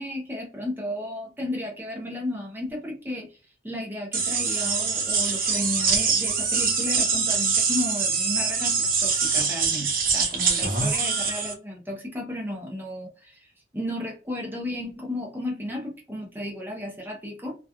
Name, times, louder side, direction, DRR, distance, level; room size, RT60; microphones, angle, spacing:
voice 1, 0.0-3.4 3.6-17.5, left 1 dB, 10° right, -2 dB, 0.7 m, -33 dB
sound 1, 4.1-11.5, right 5 dB, 55° right, 0.8 m, -24 dB
2.8 x 2.3 x 2.2 m, 0.34 s
head